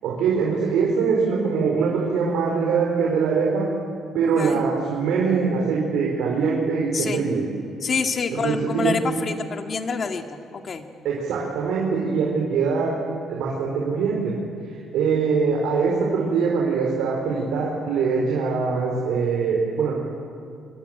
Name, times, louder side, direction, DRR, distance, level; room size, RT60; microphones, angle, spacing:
voice 1, 0.0-3.7 4.1-7.4 8.3-8.9 11.0-13.0 13.3-14.3 14.9-20.0, right 5 dB, 85° right, -2 dB, 4.7 m, -23 dB
voice 2, 7.8-10.9, left 5 dB, 40° left, 5 dB, 2.1 m, -27 dB
25.0 x 23.0 x 9.1 m, 2.4 s
cardioid pair, 125°, 0 cm